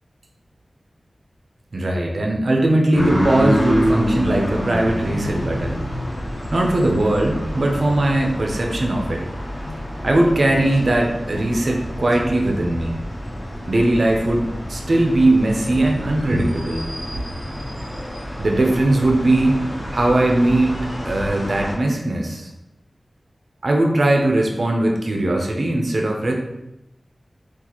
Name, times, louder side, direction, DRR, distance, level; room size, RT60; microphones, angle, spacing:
voice 1, 1.7-5.8 6.5-9.2 10.0-13.0 13.7-17.2 18.4-19.6 19.9-22.5 23.6-26.3, right 1 dB, 60° right, 1 dB, 0.5 m, -19 dB
sound 1, 2.9-21.7, equal, 25° left, 1.0 m, -27 dB
3.8 x 2.4 x 2.9 m, 0.91 s
wide cardioid pair, 80°, 0 cm